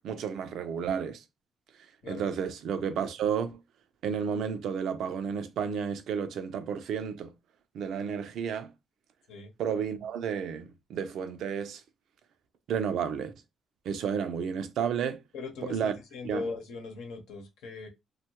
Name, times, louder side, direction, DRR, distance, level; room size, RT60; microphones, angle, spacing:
voice 1, 0.0-1.2 2.0-3.6 4.0-7.4 7.7-8.7 9.6-11.8 12.7-13.3 13.8-15.2 15.6-15.9 16.2-16.5, right 7 dB, 75° right, 0.5 m, -32 dB
voice 2, 15.3-17.9, left 4 dB, 85° left, 0.9 m, -39 dB
2.7 x 2.3 x 2.9 m
cardioid pair, 90°, 0 cm